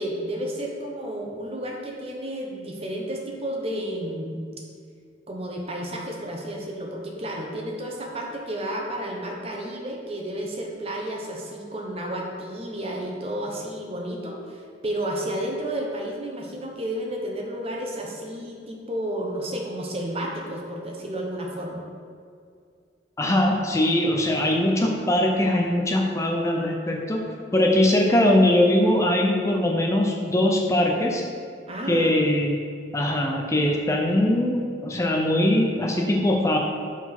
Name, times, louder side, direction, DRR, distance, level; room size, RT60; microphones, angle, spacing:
voice 1, 0.0-4.4 5.3-21.8 31.7-32.1, right 1 dB, 35° right, 0 dB, 1.1 m, -32 dB
voice 2, 23.2-27.3 27.5-31.2 31.9-32.6 32.9-36.6, left 1 dB, 15° left, 0 dB, 0.5 m, -21 dB
5.9 x 4.7 x 5.9 m, 2.2 s
head